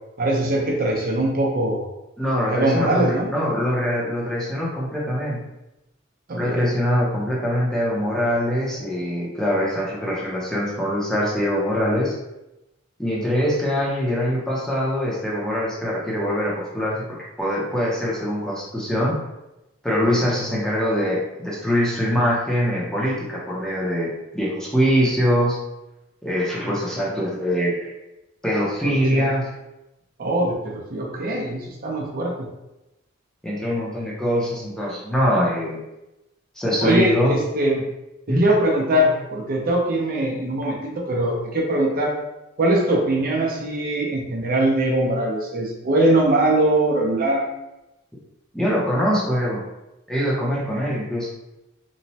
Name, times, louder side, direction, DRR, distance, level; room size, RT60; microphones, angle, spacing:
voice 1, 0.2-1.8 2.5-3.3 6.3-6.6 28.8-29.3 30.2-32.5 36.8-37.8 38.3-42.1 42.6-47.5, right 1 dB, 45° right, -2 dB, 0.5 m, -22 dB
voice 2, 2.2-5.4 6.4-12.1 13.0-17.1 17.4-19.2 19.8-25.6 26.2-27.9 28.4-29.5 33.4-35.8 36.6-37.3 38.3-38.4 48.5-49.6 50.1-51.3, equal, 5° left, -6 dB, 0.6 m, -23 dB
3.0 x 2.1 x 2.7 m, 0.95 s
head